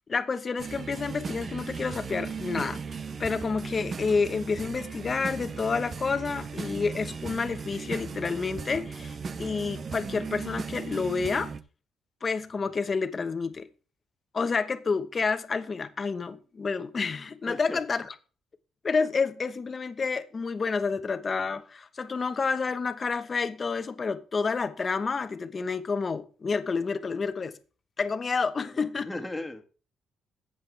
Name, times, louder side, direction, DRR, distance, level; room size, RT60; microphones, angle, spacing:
voice 1, 0.1-2.8 3.2-11.5 12.2-13.7 14.3-18.1 18.8-27.6 28.0-29.1, left 4 dB, 35° left, 1.1 m, -29 dB
sound 1, 0.6-11.6, right 5 dB, 45° right, 0.8 m, -37 dB
voice 2, 17.5-17.8 28.6-29.6, left 2 dB, 10° left, 2.0 m, -37 dB
11.5 x 8.0 x 3.4 m
cardioid pair, 90°, 0 cm